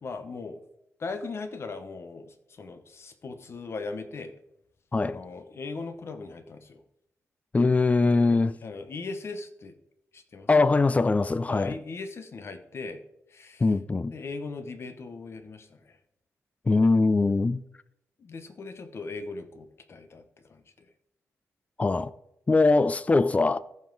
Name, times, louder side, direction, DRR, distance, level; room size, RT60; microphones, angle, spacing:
voice 1, 0.0-0.6 1.0-4.3 5.0-6.8 8.3-9.8 10.1-10.5 11.5-13.0 13.3-13.6 14.1-16.0 18.2-20.2 20.5-20.9 22.5-22.6, left 3 dB, 50° left, 1.0 m, -39 dB
voice 2, 7.5-8.5 10.5-11.8 13.6-14.1 16.7-17.6 21.8-22.1 22.5-23.6, left 3 dB, 25° left, 0.4 m, -22 dB
14.0 x 5.4 x 3.9 m
wide cardioid pair, 110°, 6 cm